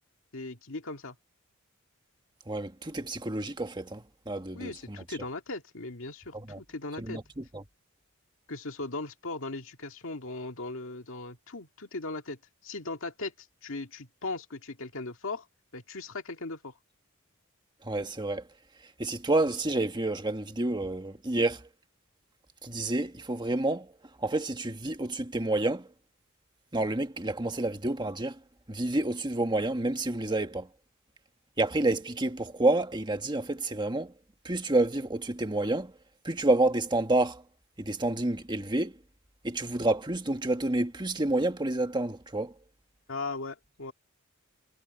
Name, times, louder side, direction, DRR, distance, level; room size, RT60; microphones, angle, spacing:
voice 1, 0.3-1.2 4.5-7.2 8.5-15.5 15.7-16.8 43.1-43.9, left 3 dB, 70° left, 2.1 m, -38 dB
voice 2, 2.5-5.0 6.3-6.6 7.0-7.6 17.8-18.4 19.0-21.6 22.6-23.9 24.2-25.9 26.7-28.4 28.7-30.7 31.6-34.1 34.4-35.9 36.2-37.4 37.8-39.0 39.4-42.5, right 2 dB, 20° right, 1.6 m, -29 dB
head